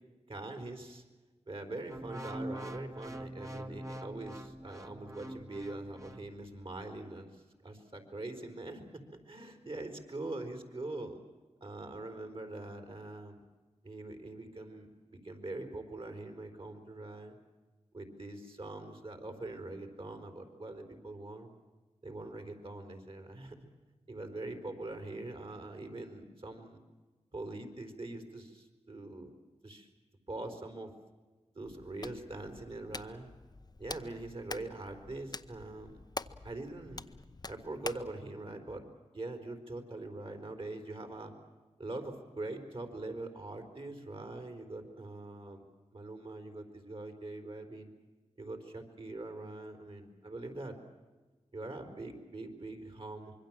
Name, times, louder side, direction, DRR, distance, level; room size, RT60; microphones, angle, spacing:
voice 1, 0.3-1.0 1.5-7.4 7.6-11.2 11.6-13.4 13.8-17.4 17.9-21.5 22.0-23.6 24.1-26.8 27.3-29.3 29.6-29.9 30.3-30.9 31.5-33.3 33.8-36.0 36.4-37.0 37.5-38.8 39.1-41.3 41.8-45.7 45.9-47.9 48.4-50.8 51.5-53.3, right 2 dB, 50° right, 6 dB, 4.3 m, -43 dB
sound 1, 1.9-6.2 6.8-7.0, right 1 dB, 25° right, 1.7 m, -44 dB
Hands, 31.6-38.1, left 3 dB, 35° left, 0.8 m, -46 dB
25.5 x 23.0 x 7.5 m, 1.3 s
wide cardioid pair, 55°, 12 cm